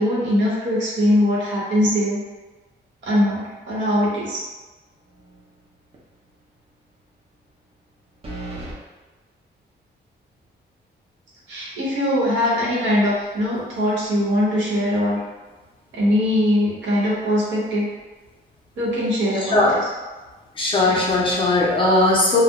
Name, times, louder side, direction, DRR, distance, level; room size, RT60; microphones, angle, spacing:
voice 1, 0.0-2.2 3.0-4.4 11.5-15.2 15.9-17.9 18.8-19.8 20.9-21.0, left 1 dB, 80° right, -6 dB, 0.9 m, -21 dB
sound 1, 5.1-5.6 5.9-6.0 8.2-8.8, right 2 dB, 30° right, 0.5 m, -35 dB
voice 2, 20.6-22.4, left 2 dB, 30° left, -4 dB, 0.5 m, -18 dB
2.2 x 2.0 x 2.9 m, 1.2 s
wide cardioid pair, 165°, 19 cm